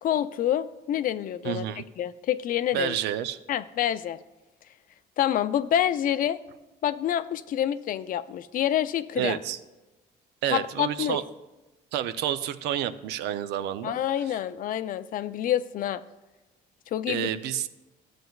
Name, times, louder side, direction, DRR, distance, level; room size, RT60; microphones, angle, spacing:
voice 1, 0.0-1.6 2.0-3.0 3.5-4.2 5.2-6.4 6.8-9.4 10.5-11.2 13.8-16.0 16.9-17.3, left 11 dB, 55° left, 13 dB, 0.4 m, -27 dB
voice 2, 1.4-1.8 2.7-3.4 9.2-9.6 10.4-11.2 11.9-14.0 14.3-14.4 17.1-17.7, right 11 dB, 85° right, 12 dB, 0.5 m, -29 dB
12.5 x 7.8 x 2.3 m, 1.1 s
cardioid pair, 110°, 17 cm